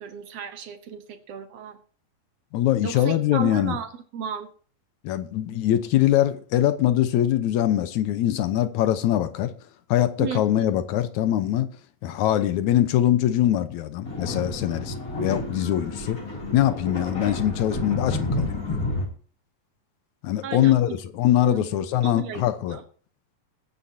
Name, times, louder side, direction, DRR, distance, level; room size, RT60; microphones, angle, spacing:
voice 1, 0.0-1.8 2.8-4.5 10.2-10.7 20.4-21.0 21.4-21.7 22.0-22.8, right 8 dB, 60° right, 1.9 m, -34 dB
voice 2, 2.5-3.8 5.0-9.5 9.9-11.7 12.0-16.2 16.5-18.8 20.2-22.8, left 12 dB, 70° left, 2.0 m, -23 dB
sound 1, 14.0-19.1, left 2 dB, 25° left, 3.0 m, -30 dB
21.0 x 9.6 x 2.8 m
omnidirectional pair, 4.0 m